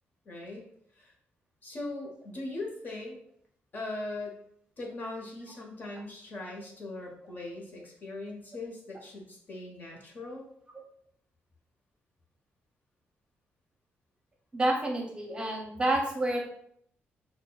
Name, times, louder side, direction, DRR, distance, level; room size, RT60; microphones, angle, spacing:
voice 1, 0.2-0.6 1.0-1.1 1.6-3.2 3.7-4.4 4.8-10.5, left 2 dB, 50° left, -1 dB, 1.1 m, -40 dB
voice 2, 14.5-16.4, right 1 dB, 25° right, 1 dB, 0.7 m, -28 dB
6.4 x 2.3 x 2.3 m, 0.67 s
cardioid pair, 110°, 4 cm